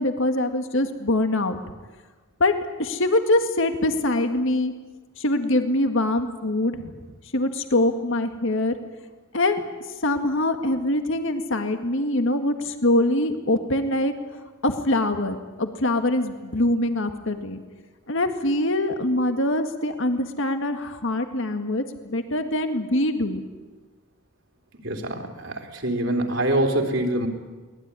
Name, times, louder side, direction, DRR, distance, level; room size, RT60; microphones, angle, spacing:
voice 1, 0.0-1.6 2.4-2.5 2.8-4.7 5.2-7.0 7.3-8.7 9.3-9.6 10.0-14.1 14.6-17.6 18.1-23.4, left 1 dB, 60° left, 7 dB, 2.0 m, -23 dB
voice 2, 24.8-27.3, right 1 dB, 60° right, 3 dB, 3.5 m, -25 dB
23.5 x 19.0 x 9.8 m, 1.3 s
head